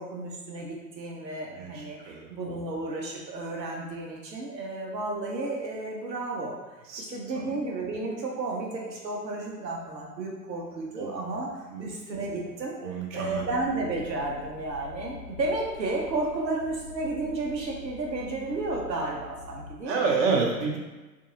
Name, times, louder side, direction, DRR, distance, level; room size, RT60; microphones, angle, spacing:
voice 1, 0.0-6.5 7.1-11.5 11.8-12.7 13.1-20.1, right 2 dB, 90° right, -1 dB, 0.7 m, -32 dB
voice 2, 1.5-2.3 6.9-7.0 7.3-7.5 11.0-11.4 11.7-11.9 12.8-13.5 19.9-20.8, right 4 dB, 50° right, -1 dB, 0.7 m, -29 dB
sound 1, 13.2-19.7, left 4 dB, 85° left, 0.7 m, -46 dB
2.6 x 2.4 x 2.7 m, 1.2 s
figure-of-eight pair, 95°, 49 cm